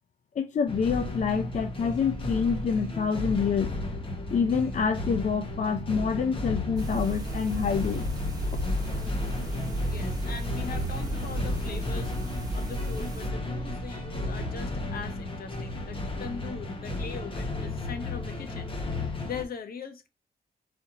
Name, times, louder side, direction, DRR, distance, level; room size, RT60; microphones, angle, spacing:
voice 1, 0.4-3.7 4.3-8.1, left 6 dB, 50° left, 0.5 m, -27 dB
sound 1, 0.7-19.4, left 2 dB, 35° left, 1.1 m, -34 dB
sound 2, 6.8-13.3, right 1 dB, 25° right, 1.1 m, -33 dB
voice 2, 9.8-20.1, left 5 dB, 70° left, 0.9 m, -41 dB
4.3 x 2.8 x 3.8 m
wide cardioid pair, 115°, 16 cm